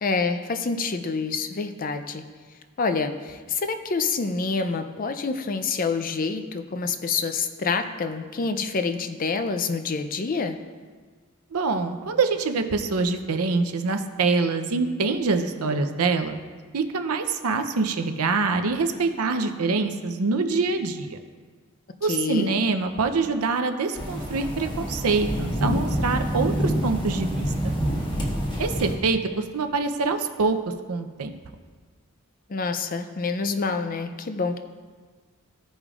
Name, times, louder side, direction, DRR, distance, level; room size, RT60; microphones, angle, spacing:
voice 1, 0.0-2.2 2.8-10.6 22.1-22.5 32.5-34.6, left 4 dB, 40° left, 8 dB, 0.4 m, -27 dB
voice 2, 11.5-16.4 16.7-21.2 22.0-27.5 28.6-30.6 30.9-31.3, right 4 dB, 85° right, 7 dB, 0.6 m, -25 dB
sound 1, 24.0-29.0, equal, 20° left, 1.2 m, -27 dB
15.0 x 5.1 x 2.4 m, 1.5 s
head